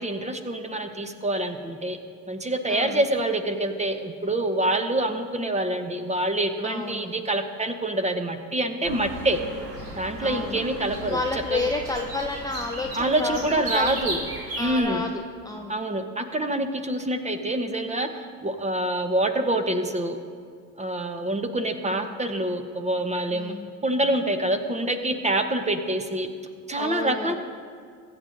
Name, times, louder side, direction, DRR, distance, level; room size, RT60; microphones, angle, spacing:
voice 1, 0.0-2.0 2.3-9.4 9.9-11.2 11.5-11.6 12.9-14.2 14.6-15.0 15.7-20.2 20.8-23.5 23.8-26.3 26.7-27.4, right 1 dB, 15° right, 7 dB, 1.1 m, -26 dB
voice 2, 2.7-3.0 6.6-7.1 10.2-10.6 11.1-13.9 14.6-15.7 21.9-22.1 23.3-23.7 26.8-27.4, left 3 dB, 10° left, 2 dB, 0.6 m, -31 dB
sound 1, 8.8-14.8, right 1 dB, 50° right, 2.7 m, -35 dB
22.0 x 7.7 x 2.7 m, 2.1 s
hypercardioid pair, 60°, 44 cm